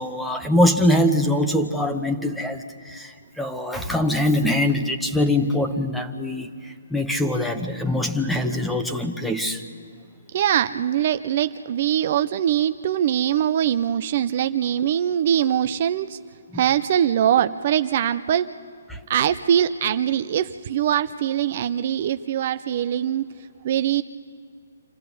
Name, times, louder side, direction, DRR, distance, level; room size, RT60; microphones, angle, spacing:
voice 1, 0.0-6.5 6.9-9.6 16.5-16.6 18.9-19.0, left 1 dB, ahead, 5 dB, 1.0 m, -23 dB
voice 2, 10.3-16.2 16.5-18.5 19.1-23.3 23.6-24.0, right 10 dB, 45° right, 11 dB, 0.5 m, -22 dB
26.5 x 13.5 x 8.3 m, 2.3 s
hypercardioid pair, 150°, 0 cm